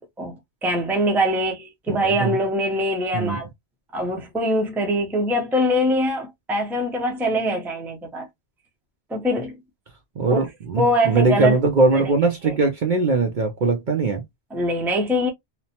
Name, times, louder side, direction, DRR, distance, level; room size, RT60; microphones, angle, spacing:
voice 1, 0.2-3.5 3.9-8.3 9.1-9.5 10.3-10.4 10.8-11.6 11.9-12.1 12.4-12.5 14.5-15.3, equal, ahead, 0.4 m, -23 dB
voice 2, 1.9-2.4 3.1-3.4 10.2-14.2, right 3 dB, 55° right, 0.6 m, -21 dB
2.9 x 2.0 x 2.7 m
omnidirectional pair, 1.2 m